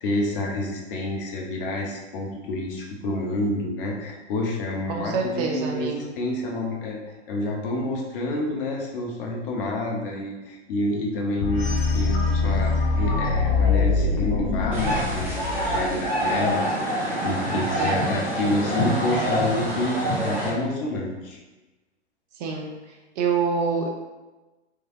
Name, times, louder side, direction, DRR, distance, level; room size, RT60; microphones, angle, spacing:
voice 1, 0.0-7.0 7.3-21.4, left 1 dB, 50° left, -1 dB, 0.8 m, -28 dB
voice 2, 4.9-6.1 17.8-18.1 22.4-22.7 23.2-23.9, right 5 dB, 35° right, 2 dB, 0.6 m, -26 dB
sound 1, 11.4-16.3, left 4 dB, 30° left, 0.4 m, -23 dB
sound 2, 14.7-20.5, right 1 dB, 5° right, 1.1 m, -26 dB
3.2 x 2.7 x 2.4 m, 1.1 s
hypercardioid pair, 115°, 35 cm